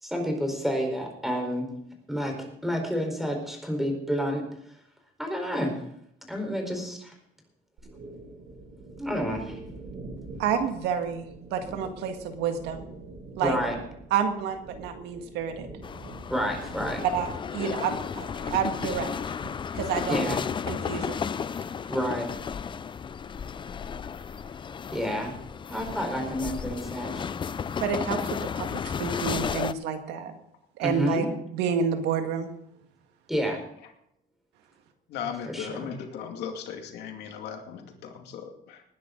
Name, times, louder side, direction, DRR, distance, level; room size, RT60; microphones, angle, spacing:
voice 1, 0.0-1.7 2.1-4.4 5.2-5.8 6.3-7.1 9.0-9.6 13.4-13.8 16.3-17.0 20.1-20.4 21.9-22.3 24.9-25.3 25.7-27.2 30.8-31.3 33.3-33.6 35.5-35.7, equal, ahead, 3 dB, 4.4 m, -29 dB
sound 1, 7.8-17.5, right 2 dB, 70° right, 4.1 m, -44 dB
voice 2, 10.4-12.8 13.4-13.6 14.1-15.7 17.1-19.1 19.7-20.4 20.7-21.3 27.8-28.2 28.6-30.3 30.8-31.3 31.5-32.5, right 7 dB, 90° right, 6 dB, 1.9 m, -29 dB
sound 2, 15.8-29.7, left 6 dB, 30° left, 0.5 m, -33 dB
voice 3, 35.1-38.8, left 7 dB, 80° left, 4 dB, 2.4 m, -37 dB
19.5 x 10.5 x 3.9 m, 0.74 s
cardioid pair, 110°, 17 cm